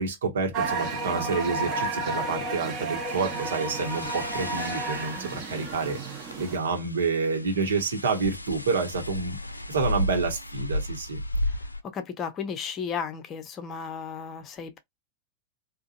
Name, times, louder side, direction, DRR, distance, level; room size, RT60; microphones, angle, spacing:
voice 1, 0.0-11.2, right 4 dB, 65° right, 1.3 m, -29 dB
sound 1, 0.5-6.6, right 3 dB, 35° right, 1.2 m, -32 dB
sound 2, 3.1-11.8, left 1 dB, 85° left, 0.4 m, -34 dB
voice 2, 11.9-14.8, left 6 dB, 30° left, 0.7 m, -34 dB
3.7 x 2.5 x 2.5 m
figure-of-eight pair, 90°, 0 cm